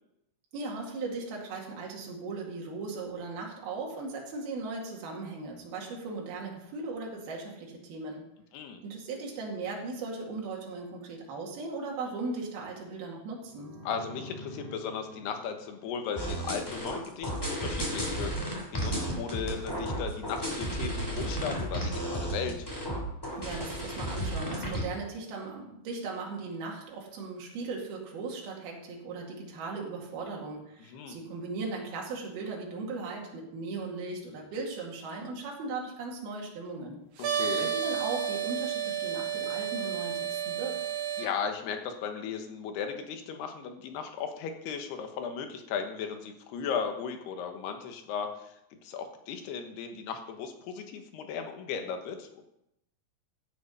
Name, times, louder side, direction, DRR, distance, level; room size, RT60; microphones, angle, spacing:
voice 1, 0.5-8.3 8.8-13.8 23.4-37.0 37.6-40.9, right 3 dB, 70° right, -1 dB, 4.1 m, -38 dB
sound 1, 13.4-17.1, equal, 35° right, 3.4 m, -48 dB
voice 2, 13.8-22.6 30.9-31.2 37.2-37.7 41.2-48.6 48.8-52.4, left 6 dB, 85° left, 5 dB, 3.3 m, -36 dB
sound 2, 16.2-24.8, right 1 dB, 5° left, 2.4 m, -33 dB
sound 3, 37.2-41.3, right 9 dB, 85° right, 3.5 m, -31 dB
15.0 x 7.7 x 5.5 m, 0.81 s
omnidirectional pair, 4.6 m